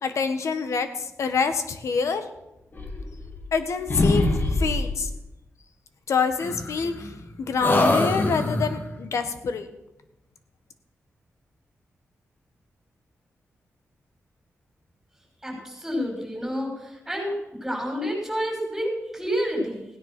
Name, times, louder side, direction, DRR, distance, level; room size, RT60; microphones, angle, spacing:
voice 1, 0.0-2.2 3.5-5.1 6.1-7.1 7.4-9.7, left 5 dB, 80° left, 9 dB, 1.4 m, -26 dB
sound 1, 2.7-3.6 3.9-5.0 6.4-7.2 7.6-8.9, left 2 dB, 40° left, 2.2 m, -24 dB
voice 2, 15.4-17.4 17.6-19.9, equal, 5° right, 0 dB, 5.4 m, -29 dB
16.5 x 10.0 x 6.1 m, 0.91 s
wide cardioid pair, 105°, 5 cm